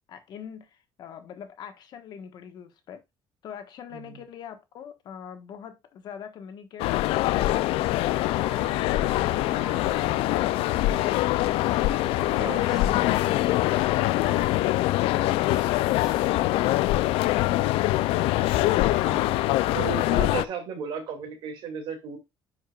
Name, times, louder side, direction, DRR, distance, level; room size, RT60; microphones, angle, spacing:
voice 1, 0.1-3.0 3.4-6.9 7.3-11.7, left 7 dB, 50° left, 1.3 m, -43 dB
sound 1, 6.8-20.4, left 16 dB, 90° left, 0.4 m, -24 dB
sound 2, 8.1-20.5, right 1 dB, 5° right, 0.8 m, -47 dB
voice 2, 12.3-12.7 19.1-22.2, right 7 dB, 60° right, 2.4 m, -35 dB
10.0 x 5.1 x 2.4 m
cardioid pair, 175°, 9 cm